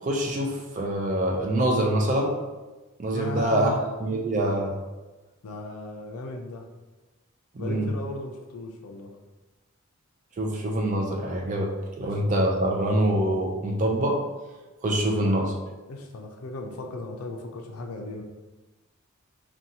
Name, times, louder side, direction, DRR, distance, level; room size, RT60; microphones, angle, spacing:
voice 1, 0.0-2.3 3.0-3.7 4.0-4.8 7.5-7.9 10.4-11.7 12.0-14.2 14.8-15.5, right 1 dB, 35° right, 1 dB, 0.3 m, -25 dB
voice 2, 3.1-3.8 5.4-6.7 7.6-9.1 12.0-12.2 15.1-15.6 15.8-18.2, left 2 dB, 75° left, 2 dB, 0.4 m, -36 dB
2.6 x 2.2 x 2.7 m, 1.2 s
head